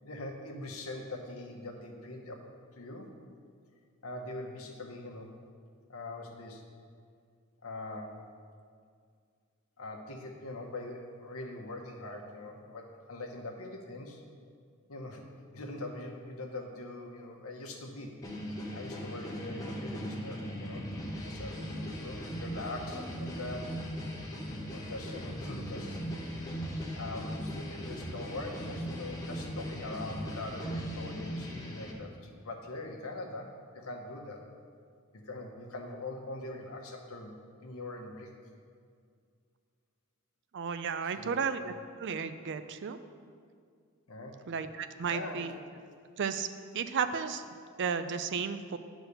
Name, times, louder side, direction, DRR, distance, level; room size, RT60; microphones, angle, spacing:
voice 1, 0.0-2.5 2.8-3.1 4.0-5.3 5.9-6.6 7.6-8.2 9.8-14.2 14.9-15.3 15.5-18.2 18.7-20.8 21.2-23.8 24.7-26.0 26.9-34.4 35.1-37.3 37.6-38.3 41.0-41.5 44.1-44.4 45.0-45.5, left 2 dB, 70° left, 1 dB, 1.1 m, -42 dB
sound 1, 18.2-31.9, equal, 15° left, 1.0 m, -39 dB
voice 2, 40.5-41.7 42.0-43.0 44.5-45.5 46.2-46.5 46.7-47.4 47.8-48.8, right 6 dB, 55° right, 10 dB, 0.4 m, -33 dB
9.6 x 4.1 x 6.7 m, 2.2 s
head